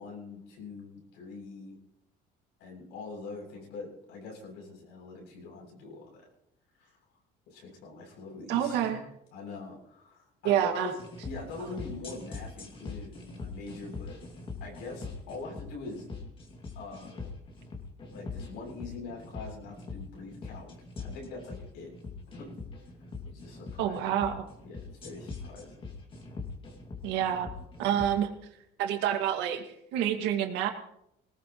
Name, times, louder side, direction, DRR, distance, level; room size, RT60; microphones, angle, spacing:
voice 1, 0.0-1.8 2.6-6.2 6.8-7.0 7.5-9.1 9.3-14.2 14.6-16.1 16.7-17.3 18.1-20.7 21.0-21.9 22.3-22.5 23.3-24.1 24.6-25.8, left 3 dB, 85° left, -1 dB, 7.8 m, -43 dB
voice 2, 8.5-9.0 10.4-10.9 23.8-24.4 27.0-27.5 27.8-28.3 28.8-29.6 29.9-30.7, right 10 dB, 85° right, 4 dB, 2.2 m, -27 dB
sound 1, 11.0-28.2, left 4 dB, 30° left, 2.5 m, -42 dB
21.5 x 18.5 x 3.2 m, 0.78 s
cardioid pair, 155°, 18 cm